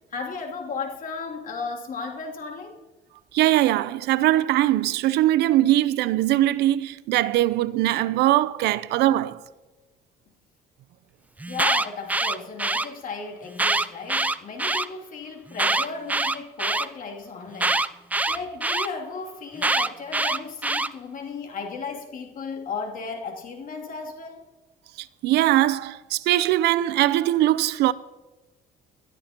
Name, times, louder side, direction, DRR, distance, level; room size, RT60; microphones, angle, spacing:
voice 1, 0.1-2.8 11.5-17.8 18.3-24.4, left 4 dB, 55° left, 2.8 m, -35 dB
voice 2, 3.3-9.4 25.0-27.9, right 14 dB, 80° right, 0.6 m, -21 dB
Alarm, 11.4-12.9 13.5-14.9 15.5-16.9 17.6-18.9 19.6-20.9, right 2 dB, 10° right, 0.5 m, -24 dB
22.5 x 13.0 x 3.0 m
cardioid pair, 110°, 17 cm